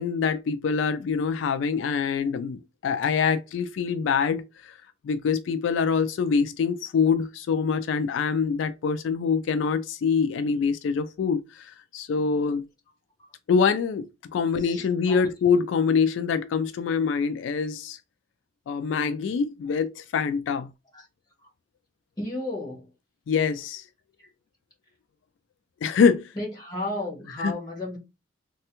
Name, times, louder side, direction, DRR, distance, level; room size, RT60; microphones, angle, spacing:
voice 1, 0.0-4.7 5.0-12.6 13.5-14.1 14.3-18.0 18.7-20.7 23.3-23.8 25.8-26.3 27.4-27.5, left 6 dB, 85° left, 0.3 m, -25 dB
voice 2, 14.6-15.3 20.9-21.0 22.2-22.9 26.4-28.0, left 1 dB, 20° left, 1.3 m, -33 dB
3.2 x 2.3 x 2.9 m
head